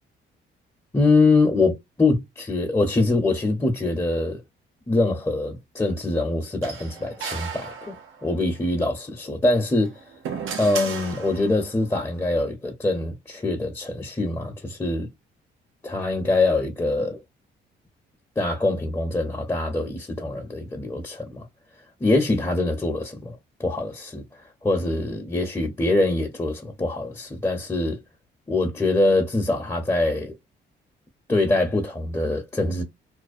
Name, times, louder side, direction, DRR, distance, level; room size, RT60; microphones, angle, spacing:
voice 1, 0.9-4.4 4.9-8.0 8.2-9.9 10.6-15.1 15.8-17.2 18.4-21.5 22.0-24.2 24.6-28.0 28.5-30.4 31.3-32.8, left 2 dB, 15° left, 0.6 m, -24 dB
sound 1, 6.6-8.4 9.7-11.7, right 6 dB, 85° right, 0.7 m, -34 dB
2.5 x 2.0 x 2.4 m
cardioid pair, 90°, 20 cm